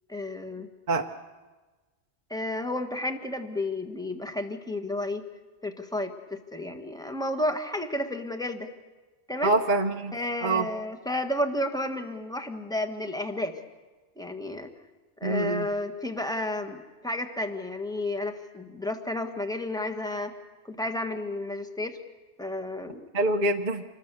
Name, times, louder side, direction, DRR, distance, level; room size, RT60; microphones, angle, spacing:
voice 1, 0.1-0.7 2.3-5.2 5.6-8.7 9.3-9.5 10.1-13.6 14.2-14.7 15.2-20.3 20.6-22.0 22.4-23.1, left 1 dB, 5° left, 6 dB, 1.4 m, -32 dB
voice 2, 9.4-10.1 10.4-10.7 15.2-15.7 23.1-23.8, right 2 dB, 45° right, 4 dB, 1.0 m, -25 dB
26.5 x 21.0 x 6.9 m, 1.3 s
omnidirectional pair, 1.2 m